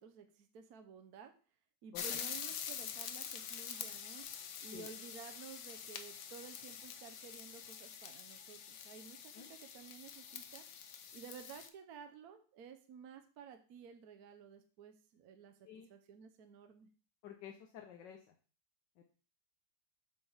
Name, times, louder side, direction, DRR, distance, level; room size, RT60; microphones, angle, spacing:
voice 1, 0.0-1.3 1.8-4.3 4.6-10.7 11.1-16.9, right 6 dB, 65° right, 6 dB, 1.2 m, -54 dB
sound 1, 1.9-11.7, left 8 dB, 60° left, 0.8 m, -46 dB
voice 2, 17.2-18.3 19.0-19.1, left 9 dB, 85° left, 3 dB, 1.5 m, -51 dB
8.0 x 3.4 x 5.5 m, 0.38 s
omnidirectional pair, 1.9 m